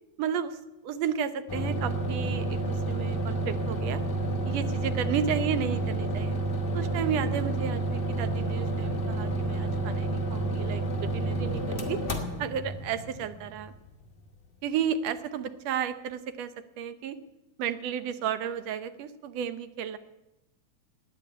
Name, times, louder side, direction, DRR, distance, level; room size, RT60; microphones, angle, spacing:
voice 1, 0.2-4.0 4.5-6.4 6.7-12.0 12.4-13.7 14.6-17.2 17.6-20.0, right 8 dB, 70° right, 12 dB, 1.9 m, -33 dB
sound 1, 1.5-14.1, right 2 dB, 25° left, 1.3 m, -30 dB
14.0 x 9.8 x 9.1 m, 0.95 s
omnidirectional pair, 3.3 m